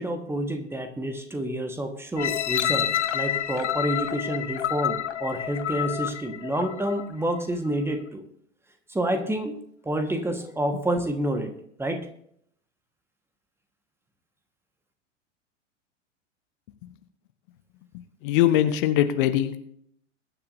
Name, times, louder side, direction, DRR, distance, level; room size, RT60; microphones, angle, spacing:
voice 1, 0.0-8.2 8.9-9.6 9.8-11.5 11.8-12.1, right 1 dB, 5° right, 6 dB, 1.5 m, -28 dB
sound 1, 2.2-7.1 7.7-7.8, left 10 dB, 70° left, 0.9 m, -28 dB
voice 2, 18.2-19.6, left 12 dB, 45° left, 10 dB, 1.0 m, -21 dB
22.0 x 9.9 x 2.7 m, 0.69 s
figure-of-eight pair, 95°, 37 cm